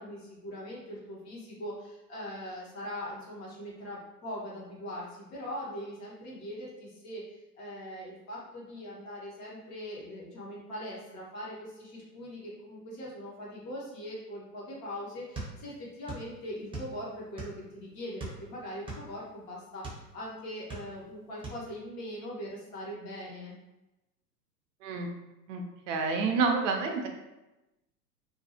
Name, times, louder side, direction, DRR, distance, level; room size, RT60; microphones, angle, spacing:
voice 1, 0.0-23.5, equal, 30° left, -5 dB, 0.9 m, -41 dB
sound 1, 15.3-16.3 16.5-17.7 18.2-20.1 20.5-21.1 21.4-21.6, right 2 dB, 10° right, 0.8 m, -40 dB
voice 2, 25.5-27.1, right 4 dB, 50° right, 3 dB, 0.6 m, -29 dB
2.5 x 2.3 x 2.8 m, 0.99 s
figure-of-eight pair, 95°, 49 cm